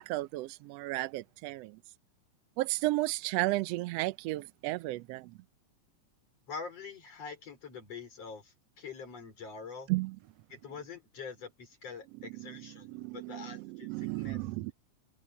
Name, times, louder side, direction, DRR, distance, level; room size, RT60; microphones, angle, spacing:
voice 1, 0.0-1.8 2.6-5.3 9.9-10.2 12.4-14.7, right 19 dB, 80° right, 1.5 m, -34 dB
voice 2, 6.5-9.9 10.5-14.4, left 5 dB, 55° left, 6.0 m, -45 dB
omnidirectional pair, 3.5 m